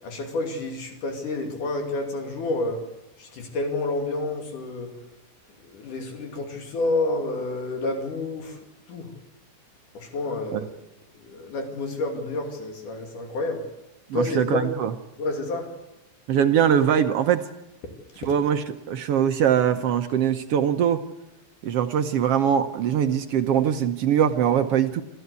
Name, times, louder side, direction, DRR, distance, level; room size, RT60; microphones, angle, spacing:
voice 1, 0.0-2.8 3.2-4.9 5.6-8.6 8.9-9.1 9.9-10.7 11.2-13.6 14.1-14.7 15.2-15.7, left 2 dB, 75° left, 3 dB, 4.1 m, -29 dB
voice 2, 14.1-14.9 16.3-17.5 18.3-21.0 21.6-25.0, right 9 dB, 70° right, 8 dB, 1.4 m, -22 dB
27.0 x 13.5 x 8.3 m, 0.95 s
omnidirectional pair, 3.7 m